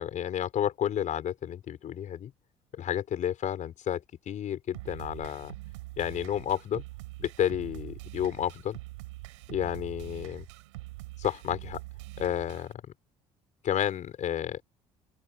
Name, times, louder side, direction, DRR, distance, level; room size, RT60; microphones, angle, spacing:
voice 1, 0.0-2.3 2.7-5.5 6.0-6.8 7.2-8.8 9.5-10.4 11.2-11.8 12.2-12.8 13.6-14.6, left 10 dB, 55° left, 5.1 m, -31 dB
sound 1, 4.7-12.7, right 21 dB, 85° right, 5.5 m, -44 dB
open air
hypercardioid pair, 65°, 15 cm